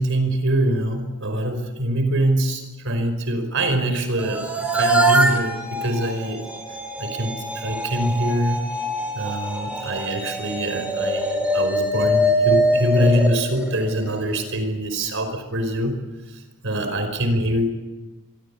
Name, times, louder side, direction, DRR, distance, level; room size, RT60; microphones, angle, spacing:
voice 1, 0.0-6.4 7.0-8.6 9.1-16.0 16.3-17.7, right 1 dB, 65° right, 8 dB, 5.2 m, -24 dB
sound 1, 4.2-14.4, right 1 dB, 5° right, 4.5 m, -23 dB
26.5 x 23.5 x 8.6 m, 1.2 s
head